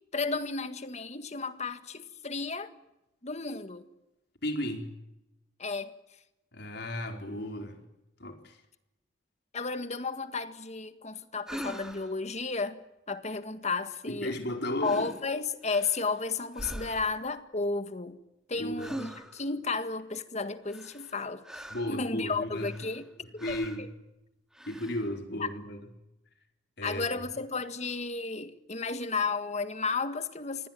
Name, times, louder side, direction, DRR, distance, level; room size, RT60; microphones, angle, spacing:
voice 1, 0.1-2.7 3.2-3.8 5.6-5.9 9.5-12.8 13.1-14.3 14.8-18.2 18.5-21.4 21.9-23.0 23.5-23.6 25.4-25.5 26.8-30.7, left 4 dB, 40° left, 1.8 m, -33 dB
voice 2, 4.4-4.9 6.5-7.8 8.2-8.6 14.1-15.1 18.5-19.0 21.7-22.7 23.2-23.9 24.7-25.9 26.8-27.2, left 1 dB, 60° left, 4.7 m, -35 dB
sound 1, 11.5-12.2 14.3-14.5 14.8-15.2 15.6-16.2 16.5-17.3 18.8-19.5 20.7-22.0 22.5-23.1 23.4-23.9 24.5-25.1, equal, 5° right, 2.4 m, -43 dB
27.5 x 20.5 x 9.2 m
head